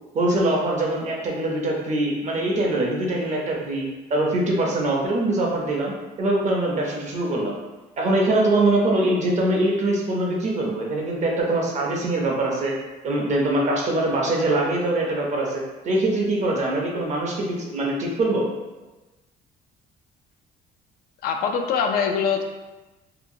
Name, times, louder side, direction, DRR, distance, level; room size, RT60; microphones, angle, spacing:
voice 1, 0.1-7.5 8.0-12.7 13.0-18.5, right 1 dB, 45° right, -2 dB, 0.7 m, -23 dB
voice 2, 21.2-22.4, left 6 dB, 65° left, 4 dB, 0.4 m, -23 dB
2.8 x 2.4 x 2.7 m, 1.1 s
cardioid pair, 110°, 17 cm